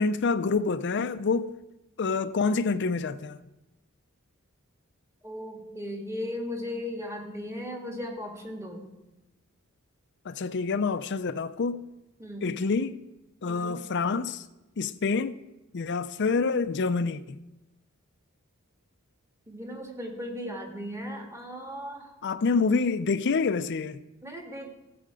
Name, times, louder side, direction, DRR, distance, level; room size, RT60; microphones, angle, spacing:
voice 1, 0.0-1.5 2.0-3.4 10.2-11.8 12.4-13.0 13.4-14.4 14.8-15.4 15.7-17.4 22.2-24.0, left 4 dB, 55° left, 0.5 m, -27 dB
voice 2, 5.2-8.9 12.2-12.5 13.5-13.8 19.5-22.1 24.2-24.7, left 1 dB, 15° right, 1.7 m, -37 dB
16.0 x 7.8 x 4.9 m
head